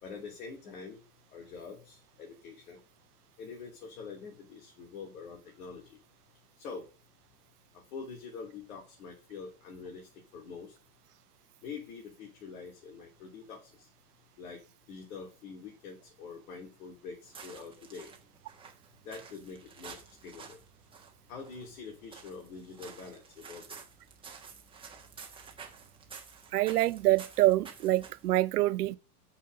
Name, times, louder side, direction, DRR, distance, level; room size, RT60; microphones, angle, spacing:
voice 1, 0.0-1.0 1.3-2.8 3.4-6.0 6.6-6.9 7.9-10.7 11.6-13.9 14.4-14.6 14.9-18.1 19.0-20.6 21.3-23.8, left 5 dB, 65° left, 3.1 m, -45 dB
sound 1, 17.2-28.4, right 5 dB, 10° right, 1.6 m, -51 dB
voice 2, 26.5-29.0, right 16 dB, 80° right, 0.8 m, -26 dB
5.8 x 5.3 x 6.4 m
hypercardioid pair, 135°, 46 cm